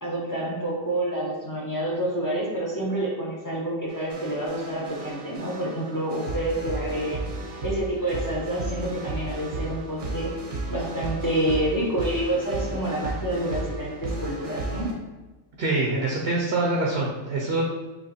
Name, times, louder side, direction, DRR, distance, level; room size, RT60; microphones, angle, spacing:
voice 1, 0.0-7.3 7.6-10.3 10.7-14.9, right 1 dB, 25° left, -5 dB, 0.4 m, -28 dB
sound 1, 3.9-14.9, right 2 dB, 80° right, 1.2 m, -34 dB
voice 2, 15.6-17.6, right 2 dB, 60° right, -2 dB, 0.7 m, -25 dB
4.0 x 2.9 x 2.7 m, 1.2 s
omnidirectional pair, 1.4 m